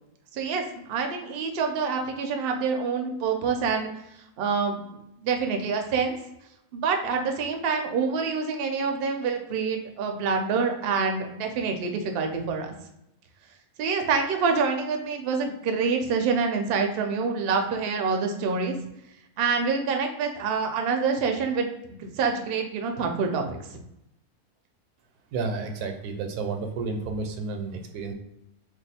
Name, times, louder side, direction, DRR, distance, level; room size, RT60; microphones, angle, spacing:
voice 1, 0.3-3.9 4.4-6.2 6.7-12.7 13.8-18.8 19.4-23.8, right 5 dB, 70° right, 4 dB, 0.5 m, -26 dB
voice 2, 25.3-28.1, right 4 dB, 85° right, 5 dB, 1.1 m, -31 dB
2.6 x 2.4 x 4.1 m, 0.85 s
omnidirectional pair, 1.6 m